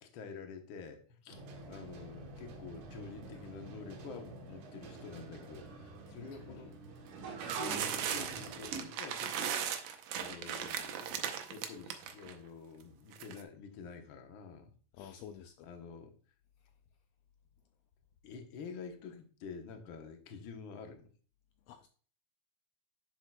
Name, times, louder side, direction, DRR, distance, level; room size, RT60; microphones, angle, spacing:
voice 1, 0.0-6.8 7.4-11.1 11.5-15.2 15.6-16.1 18.2-21.1, left 5 dB, 60° left, 1.4 m, -48 dB
sound 1, 1.3-8.8, right 4 dB, 90° right, 2.8 m, -46 dB
sound 2, 7.5-12.3 13.1-13.4, right 8 dB, 70° right, 1.9 m, -37 dB
voice 2, 15.0-15.7 21.7-21.9, left 8 dB, 85° left, 1.4 m, -50 dB
10.0 x 7.2 x 2.3 m
omnidirectional pair, 3.5 m